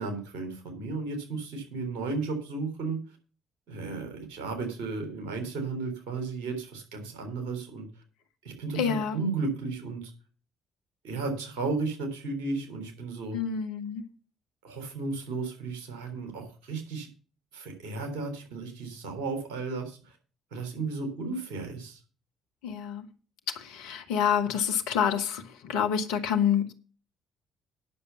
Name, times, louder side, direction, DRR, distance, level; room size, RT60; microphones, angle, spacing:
voice 1, 0.0-3.0 3.7-7.9 8.4-10.1 11.0-13.4 14.6-17.1 17.5-20.1 20.5-22.0, right 3 dB, 65° right, 3.7 m, -34 dB
voice 2, 8.7-9.2 13.3-14.0 22.6-23.1 23.5-26.7, left 8 dB, 65° left, 1.2 m, -28 dB
9.8 x 6.8 x 6.9 m
figure-of-eight pair, 45°, 0 cm